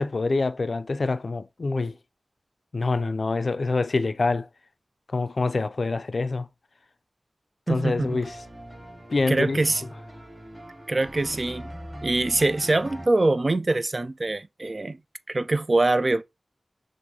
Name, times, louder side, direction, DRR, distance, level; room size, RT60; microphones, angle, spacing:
voice 1, 0.0-1.9 2.7-4.5 5.1-6.5 7.7-8.4 9.1-9.6, left 3 dB, 70° left, 0.3 m, -25 dB
voice 2, 7.7-8.2 9.3-9.8 10.9-11.7 12.0-15.0 15.3-16.2, right 2 dB, 50° right, 0.3 m, -24 dB
sound 1, 8.0-13.1, equal, 30° right, 3.1 m, -41 dB
6.2 x 2.5 x 2.7 m
cardioid pair, 45°, 0 cm